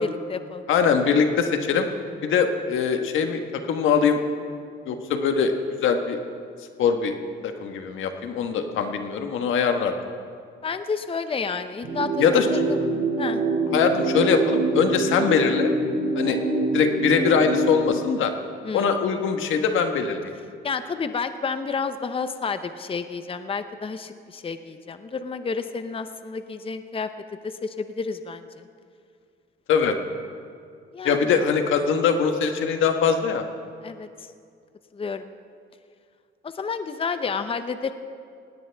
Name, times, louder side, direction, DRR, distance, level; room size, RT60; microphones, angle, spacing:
voice 1, 0.0-0.6 10.6-12.2 12.5-12.8 13.2-13.4 18.6-18.9 20.6-27.1 27.4-28.6 30.9-31.4 33.8-34.1 34.9-35.3 36.4-37.9, left 5 dB, 30° left, 10 dB, 0.7 m, -30 dB
voice 2, 0.7-1.9 2.2-4.2 4.9-5.5 5.8-6.2 6.8-7.1 7.4-9.9 12.2-12.5 13.7-15.7 16.2-16.4 16.7-18.3 18.7-20.2 29.7-30.0 31.0-33.4, left 6 dB, 80° left, 6 dB, 1.4 m, -22 dB
sound 1, 11.8-17.8, right 2 dB, 65° right, 3.2 m, -25 dB
18.5 x 17.5 x 3.5 m, 2.3 s
cardioid pair, 90°, 20 cm